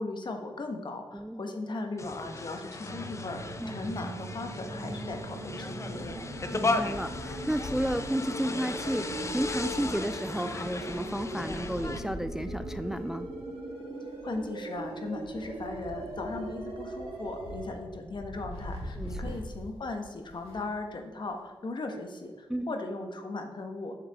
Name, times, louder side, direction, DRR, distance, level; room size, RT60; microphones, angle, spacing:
voice 1, 0.0-6.2 14.2-23.9, left 2 dB, 50° left, 4 dB, 1.3 m, -37 dB
voice 2, 1.1-1.4 3.6-3.8 6.5-13.3 19.0-19.4 22.5-22.7, right 1 dB, 5° right, 11 dB, 0.3 m, -32 dB
sound 1, 2.0-12.0, left 3 dB, 30° left, 0.8 m, -36 dB
sound 2, 2.8-17.7, right 2 dB, 75° right, 2.1 m, -40 dB
Wind, 4.2-20.8 21.1-21.2 22.2-22.3, left 1 dB, 85° left, 1.9 m, -44 dB
8.2 x 7.2 x 3.6 m, 1.4 s
cardioid pair, 55°, 10 cm